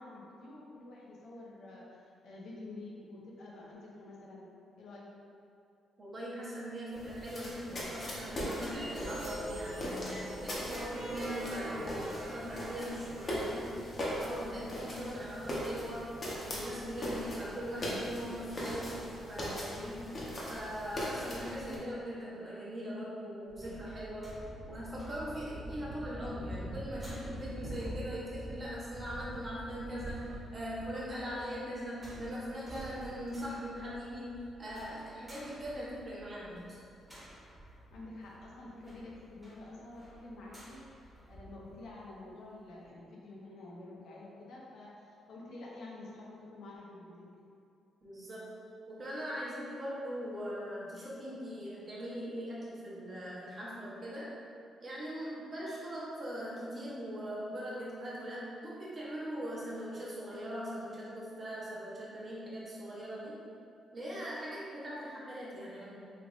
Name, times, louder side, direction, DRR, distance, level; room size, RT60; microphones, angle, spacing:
voice 1, 0.0-4.5 4.8-5.1 14.4-14.7 37.9-47.3, left 2 dB, 75° left, -4 dB, 0.6 m, -49 dB
voice 2, 6.0-13.8 14.2-19.0 19.3-20.2 20.5-24.3 24.7-36.8 48.0-48.5 48.9-54.3 54.8-63.4 63.9-66.1, equal, 35° right, -7 dB, 0.9 m, -41 dB
sound 1, 6.9-21.8, equal, 40° left, 0.7 m, -40 dB
sound 2, 8.7-13.7, right 1 dB, 85° right, 0.8 m, -43 dB
sound 3, 23.5-41.9 42.3-42.4, right 1 dB, 10° right, 1.0 m, -47 dB
3.2 x 3.0 x 2.5 m, 2.5 s
cardioid pair, 90°, 0 cm